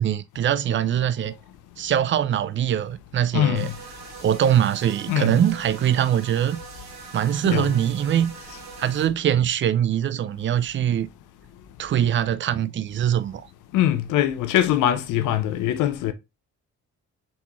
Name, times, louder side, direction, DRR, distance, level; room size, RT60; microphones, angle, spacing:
voice 1, 0.0-1.3 1.8-3.7 4.2-6.6 7.1-8.3 8.8-11.1 11.8-13.5, right 10 dB, 40° right, 0.4 m, -22 dB
voice 2, 3.3-3.8 5.1-5.4 7.4-7.7 13.7-16.1, left 11 dB, 90° left, 0.7 m, -22 dB
sound 1, 3.5-9.1, right 4 dB, 60° right, 2.1 m, -42 dB
4.1 x 3.6 x 2.9 m
cardioid pair, 90°, 30 cm